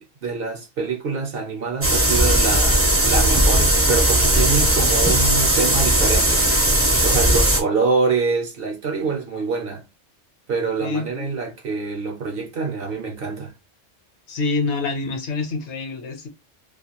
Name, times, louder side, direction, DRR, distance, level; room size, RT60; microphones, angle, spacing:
voice 1, 0.0-6.4 7.0-9.8 10.5-13.5, right 4 dB, 55° right, 0.8 m, -25 dB
sound 1, 1.8-7.6, right 1 dB, 15° right, 0.4 m, -17 dB
voice 2, 14.3-16.3, left 3 dB, 65° left, 1.0 m, -26 dB
2.4 x 2.3 x 2.8 m
omnidirectional pair, 1.3 m